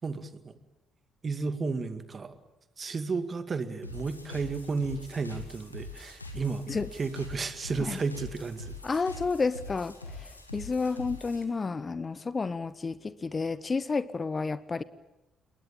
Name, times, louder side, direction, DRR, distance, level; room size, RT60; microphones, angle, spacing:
voice 1, 0.0-0.5 1.2-2.4 2.8-6.6 6.9-8.8, right 4 dB, 35° right, 10 dB, 2.3 m, -33 dB
sound 1, 3.8-11.4, left 2 dB, 90° left, 2.0 m, -43 dB
voice 2, 8.8-14.8, left 4 dB, 30° left, 17 dB, 1.1 m, -31 dB
28.5 x 21.5 x 9.0 m, 0.97 s
figure-of-eight pair, 45°, 0 cm